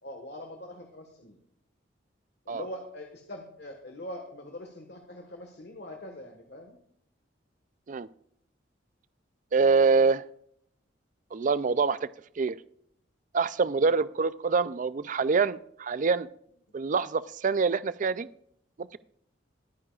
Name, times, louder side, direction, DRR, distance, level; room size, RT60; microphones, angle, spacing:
voice 1, 0.0-1.4 2.4-6.7 13.6-13.8, left 1 dB, 60° left, 3 dB, 1.6 m, -43 dB
voice 2, 9.5-10.2 11.3-12.1 12.4-12.6 13.3-16.3 16.7-18.3 18.8-19.0, right 4 dB, 40° right, 16 dB, 0.4 m, -25 dB
23.0 x 9.8 x 2.4 m, 0.70 s
head